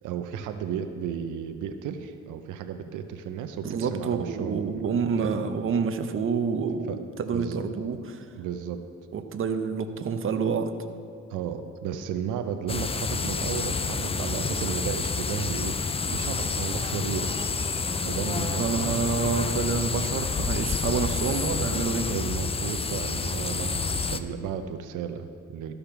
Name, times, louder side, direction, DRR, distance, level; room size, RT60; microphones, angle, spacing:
voice 1, 0.0-5.3 6.9-7.0 7.3-7.6 8.4-8.8 11.3-15.8 16.1-17.4 18.0-19.0 22.1-25.7, right 8 dB, 85° right, 8 dB, 0.7 m, -34 dB
voice 2, 3.6-8.2 9.1-10.7 18.6-22.1, right 5 dB, 45° right, 7 dB, 0.8 m, -28 dB
sound 1, 12.7-24.2, left 4 dB, 20° left, 0.4 m, -29 dB
13.5 x 5.1 x 5.9 m, 2.4 s
cardioid pair, 90°, 30 cm